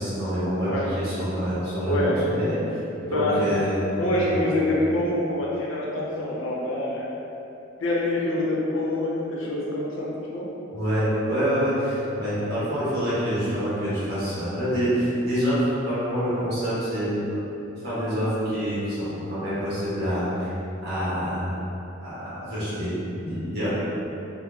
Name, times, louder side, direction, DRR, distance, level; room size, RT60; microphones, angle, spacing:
voice 1, 0.0-0.7 1.0-2.8 3.1-3.8 4.2-4.4 10.7-17.3 17.8-20.5 20.8-21.5 22.0-22.9 23.2-23.7, equal, 50° right, -11 dB, 1.3 m, -26 dB
voice 2, 1.8-2.2 3.0-3.5 4.0-7.1 7.8-10.5, left 1 dB, 75° left, -5 dB, 0.7 m, -26 dB
3.4 x 2.0 x 3.7 m, 2.9 s
head